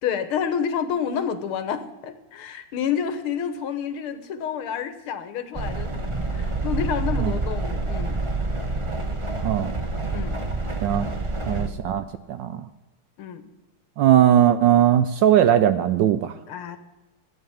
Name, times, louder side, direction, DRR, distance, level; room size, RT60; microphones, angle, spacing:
voice 1, 0.0-8.2 10.1-10.4 11.5-11.8 13.2-13.5 16.5-16.8, left 7 dB, 75° left, 11 dB, 1.9 m, -29 dB
sound 1, 5.5-11.7, right 2 dB, 35° right, 0.5 m, -27 dB
voice 2, 11.5-12.6 14.0-16.3, right 10 dB, 75° right, 12 dB, 1.1 m, -19 dB
12.5 x 9.1 x 7.1 m, 1.0 s
omnidirectional pair, 2.4 m